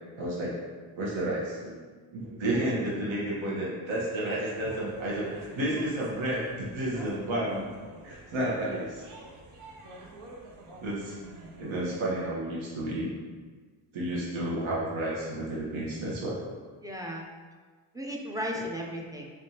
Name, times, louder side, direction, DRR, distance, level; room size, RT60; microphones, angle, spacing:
voice 1, 0.2-0.6 1.0-1.8 2.1-7.6 8.0-9.0 10.8-11.1 11.6-13.1 13.9-16.3, right 1 dB, 70° right, -6 dB, 1.1 m, -31 dB
voice 2, 2.5-3.0 16.8-17.2 17.9-19.3, equal, 10° right, -1 dB, 0.3 m, -35 dB
sound 1, 4.5-12.1, right 2 dB, 90° right, 0.8 m, -48 dB
3.7 x 3.4 x 2.8 m, 1.4 s
cardioid pair, 105°, 48 cm